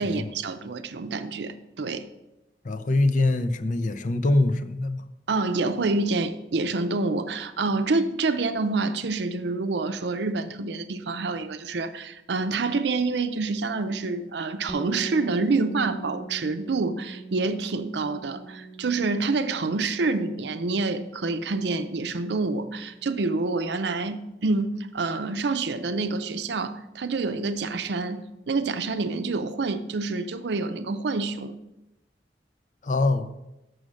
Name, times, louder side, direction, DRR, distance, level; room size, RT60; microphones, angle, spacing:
voice 1, 0.0-2.0 5.3-31.6, right 3 dB, 75° right, 0.6 m, -27 dB
voice 2, 2.6-5.0 32.8-33.3, left 2 dB, 45° left, 0.5 m, -23 dB
sound 1, 14.7-24.4, right 3 dB, 10° right, 1.2 m, -43 dB
6.4 x 6.2 x 6.3 m
head